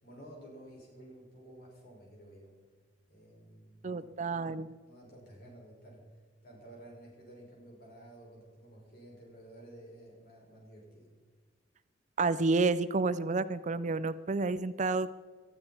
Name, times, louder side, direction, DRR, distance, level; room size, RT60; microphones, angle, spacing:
voice 1, 0.0-2.5 3.1-4.6 4.8-6.0 6.4-11.1, right 1 dB, 50° left, -2 dB, 5.8 m, -53 dB
voice 2, 3.8-4.7 12.2-15.1, right 3 dB, 35° right, 14 dB, 0.4 m, -30 dB
19.5 x 12.5 x 4.4 m, 1.5 s
head